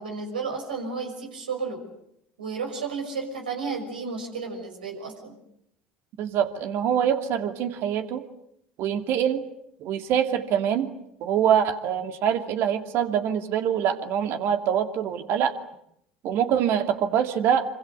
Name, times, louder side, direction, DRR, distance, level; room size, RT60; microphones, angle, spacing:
voice 1, 0.0-1.8 2.4-5.3, right 4 dB, 80° right, 4 dB, 6.0 m, -32 dB
voice 2, 6.2-8.2 8.8-9.4 9.8-10.9 11.2-15.5 16.2-17.6, right 9 dB, 55° right, 7 dB, 2.6 m, -24 dB
26.5 x 25.5 x 8.2 m, 0.75 s
figure-of-eight pair, 65°, 5 cm